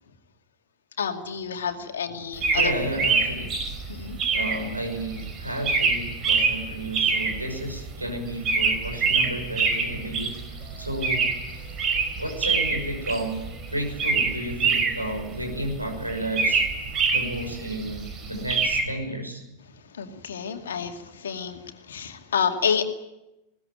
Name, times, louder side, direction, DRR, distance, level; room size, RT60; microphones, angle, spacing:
voice 1, 1.0-2.7 3.9-4.2 19.9-22.8, left 7 dB, 65° left, 5 dB, 2.3 m, -29 dB
sound 1, 2.4-18.8, right 4 dB, 30° right, 5.0 m, -26 dB
voice 2, 2.5-3.6 4.3-11.3 12.2-16.6 17.1-19.4, right 1 dB, 85° right, 3 dB, 6.0 m, -32 dB
21.0 x 18.5 x 9.1 m, 0.94 s
figure-of-eight pair, 90°, 0 cm